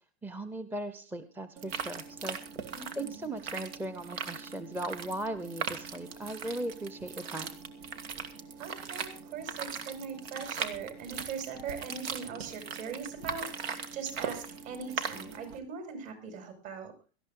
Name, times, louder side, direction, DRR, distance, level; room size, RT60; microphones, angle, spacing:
voice 1, 0.2-2.4 2.9-7.6, right 1 dB, 5° right, 11 dB, 0.7 m, -38 dB
sound 1, 1.6-15.6, right 6 dB, 85° right, 2.0 m, -40 dB
voice 2, 2.7-3.4 8.6-13.5 13.9-16.9, right 6 dB, 55° right, 7 dB, 6.0 m, -40 dB
18.0 x 13.5 x 3.8 m, 0.33 s
supercardioid pair, 125°, 30 cm